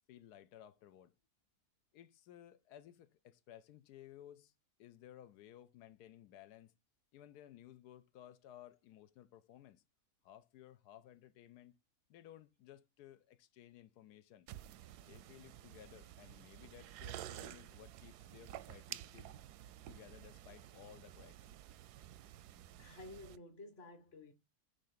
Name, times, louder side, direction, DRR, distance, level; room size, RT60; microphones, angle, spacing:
voice 1, 0.1-1.1 1.9-4.5 4.8-6.7 7.1-9.8 10.2-11.7 12.1-14.5 15.0-19.4 19.9-21.5, left 11 dB, 90° left, 1.2 m, -58 dB
sound 1, 14.5-23.4, right 12 dB, 85° right, 1.1 m, -51 dB
voice 2, 22.8-24.3, left 2 dB, 40° left, 1.5 m, -53 dB
7.6 x 5.2 x 3.9 m
omnidirectional pair, 1.6 m